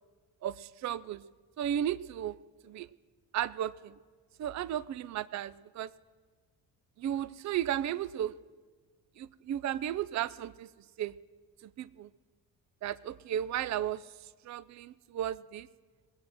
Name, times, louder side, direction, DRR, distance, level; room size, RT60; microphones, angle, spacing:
voice 1, 0.4-1.2 1.6-2.4 2.6-2.9 3.3-4.0 4.4-5.9 7.0-8.4 9.2-10.7 11.0-11.1 11.6-12.1 12.8-14.0 14.4-15.7, right 11 dB, 35° right, 19 dB, 0.5 m, -34 dB
20.0 x 7.8 x 6.1 m, 1.5 s
hypercardioid pair, 45°, 49 cm